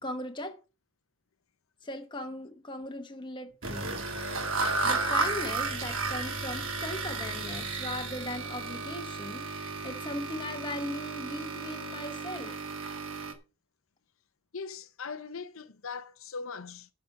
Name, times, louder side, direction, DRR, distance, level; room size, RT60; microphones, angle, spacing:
voice 1, 0.0-0.6 1.8-3.9 4.8-12.6, left 1 dB, 20° left, 1.2 m, -38 dB
sound 1, 3.6-13.3, right 3 dB, 65° right, 2.1 m, -33 dB
voice 2, 14.5-16.9, left 5 dB, 70° left, 0.7 m, -40 dB
10.5 x 5.1 x 7.6 m
head